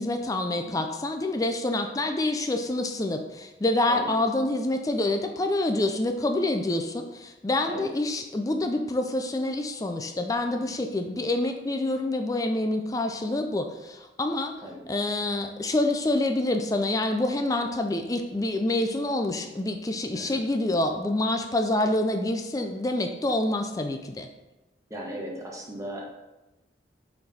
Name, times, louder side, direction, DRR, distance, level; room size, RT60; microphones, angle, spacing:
voice 1, 0.0-14.5 14.9-24.3, left 2 dB, 20° left, 5 dB, 0.4 m, -27 dB
voice 2, 24.9-26.1, equal, 15° right, -2 dB, 1.1 m, -37 dB
6.4 x 4.4 x 4.2 m, 1.0 s
head